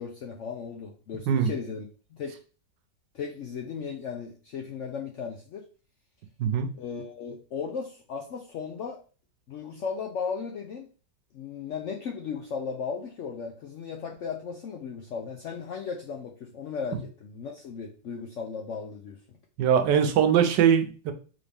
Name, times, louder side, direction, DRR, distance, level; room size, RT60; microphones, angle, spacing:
voice 1, 0.0-1.9 2.1-2.4 3.1-5.7 6.7-9.0 9.5-10.9 11.3-19.2, left 6 dB, 75° left, 1 dB, 0.7 m, -36 dB
voice 2, 6.4-6.7 19.6-21.1, right 8 dB, 80° right, 8 dB, 1.3 m, -22 dB
3.9 x 3.5 x 3.4 m, 0.38 s
omnidirectional pair, 1.9 m